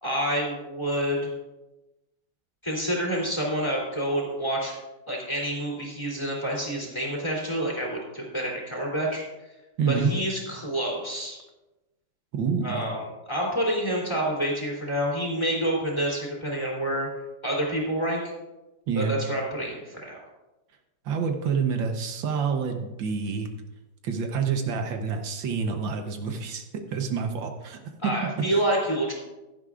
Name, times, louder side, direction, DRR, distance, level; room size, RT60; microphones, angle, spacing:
voice 1, 0.0-1.3 2.6-4.8 5.1-9.2 9.9-11.4 12.6-13.0 13.3-17.1 17.4-18.3 18.9-20.2 28.0-29.1, right 1 dB, 15° left, -3 dB, 2.9 m, -28 dB
voice 2, 9.8-10.1 12.3-12.8 18.9-19.2 21.1-23.5 24.0-26.6 26.9-28.3, right 6 dB, 80° right, 5 dB, 1.7 m, -27 dB
16.0 x 11.5 x 2.5 m, 1.0 s
omnidirectional pair, 2.1 m